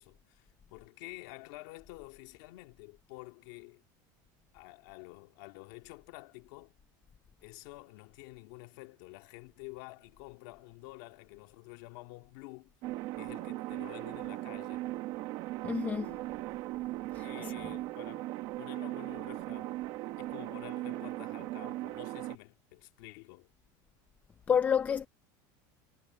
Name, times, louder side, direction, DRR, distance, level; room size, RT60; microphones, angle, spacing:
voice 1, 0.0-3.8 4.5-6.7 7.4-12.7 13.2-14.9 17.2-19.8 20.2-23.5, left 22 dB, 65° left, 2.2 m, -50 dB
sound 1, 12.8-22.4, right 17 dB, 50° right, 1.2 m, -38 dB
voice 2, 15.6-16.1 17.1-17.7 24.5-25.1, left 7 dB, 15° left, 0.5 m, -30 dB
cardioid pair, 170°, 10 cm